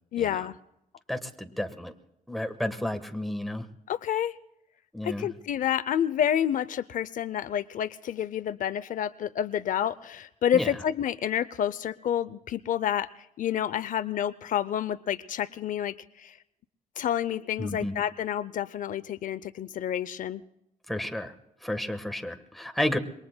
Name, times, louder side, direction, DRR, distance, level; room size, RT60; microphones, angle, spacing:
voice 1, 0.1-0.6 3.9-4.4 5.0-13.1 13.4-16.4 17.0-20.4, left 10 dB, 70° left, 15 dB, 0.5 m, -29 dB
voice 2, 1.1-1.9 2.3-3.6 4.9-5.3 10.5-10.7 17.6-18.0 20.9-21.3 21.6-23.0, left 1 dB, ahead, 6 dB, 1.3 m, -31 dB
27.0 x 22.5 x 2.2 m, 0.84 s
cardioid pair, 130°, 14 cm